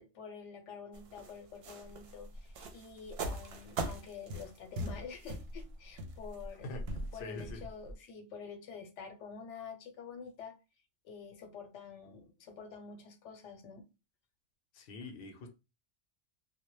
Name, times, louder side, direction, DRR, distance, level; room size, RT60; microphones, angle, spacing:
voice 1, 0.0-6.7 7.1-10.5 11.0-13.9, left 5 dB, 85° left, 5 dB, 0.9 m, -48 dB
sound 1, 0.9-7.9, right 1 dB, 65° right, 0.7 m, -41 dB
voice 2, 7.1-7.6 14.7-15.5, left 2 dB, 60° left, 4 dB, 0.7 m, -44 dB
2.1 x 2.0 x 2.9 m, 0.27 s
omnidirectional pair, 1.2 m